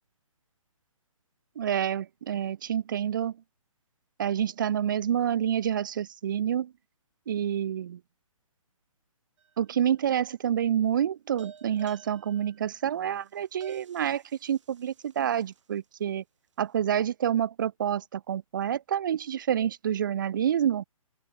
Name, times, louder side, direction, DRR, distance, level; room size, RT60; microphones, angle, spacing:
voice 1, 1.6-3.3 4.2-6.7 7.3-8.0 9.6-16.2 16.6-20.8, right 9 dB, 35° right, 0.6 m, -28 dB
sound 1, 9.4-10.0 11.4-15.8, right 7 dB, 60° right, 5.1 m, -53 dB
open air
hypercardioid pair, 165°, 18 cm